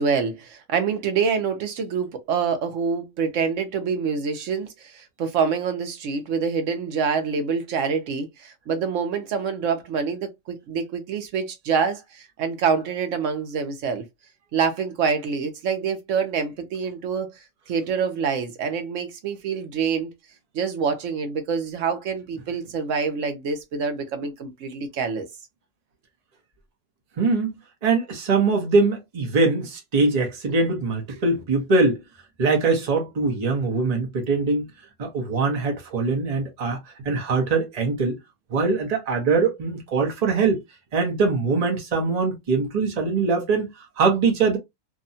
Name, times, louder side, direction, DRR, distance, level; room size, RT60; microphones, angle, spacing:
voice 1, 0.0-14.0 14.5-17.3 17.7-20.1 20.5-25.3, right 6 dB, 65° right, 1.0 m, -26 dB
voice 2, 27.2-27.5 27.8-32.0 32.4-34.7 35.0-36.8 37.0-38.2 38.5-40.6 40.9-44.6, right 4 dB, 35° right, 0.8 m, -22 dB
2.8 x 2.2 x 2.6 m
omnidirectional pair, 1.5 m